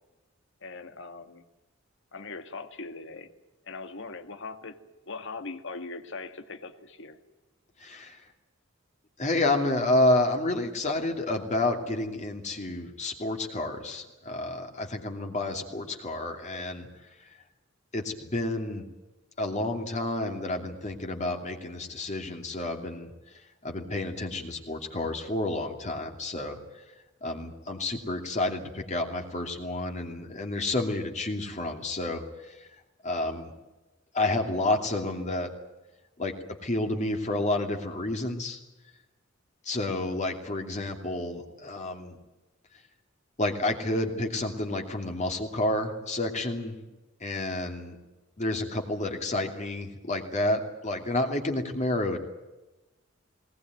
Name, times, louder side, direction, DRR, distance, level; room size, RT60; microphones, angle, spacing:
voice 1, 0.6-1.4 2.1-3.3 3.6-4.8 5.1-7.2, left 3 dB, 65° left, 8 dB, 1.9 m, -40 dB
voice 2, 7.8-8.2 9.2-16.9 17.9-18.8 19.4-23.1 23.6-26.6 27.2-32.7 33.0-33.5 34.1-35.5 36.2-36.4 36.6-38.6 39.6-42.2 43.4-46.8 47.2-48.0 48.4-52.2, left 2 dB, 35° left, 3 dB, 2.7 m, -30 dB
20.5 x 19.5 x 9.2 m, 1.1 s
head